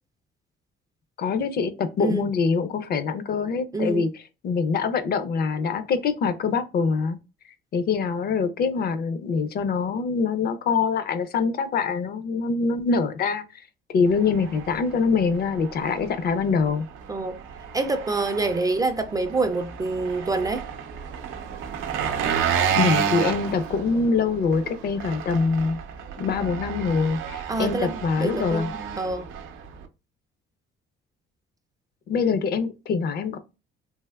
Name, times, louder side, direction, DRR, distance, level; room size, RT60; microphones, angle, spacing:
voice 1, 1.2-7.2 7.7-13.4 13.9-16.9 22.8-25.8 26.2-28.7 32.1-33.4, left 5 dB, 50° left, 0.5 m, -24 dB
voice 2, 3.7-4.0 17.1-17.4 17.7-20.7 27.5-29.3, right 3 dB, 20° right, 0.3 m, -26 dB
Engine, 14.1-29.9, right 7 dB, 85° right, 0.5 m, -31 dB
3.4 x 2.7 x 2.2 m
cardioid pair, 110°, 20 cm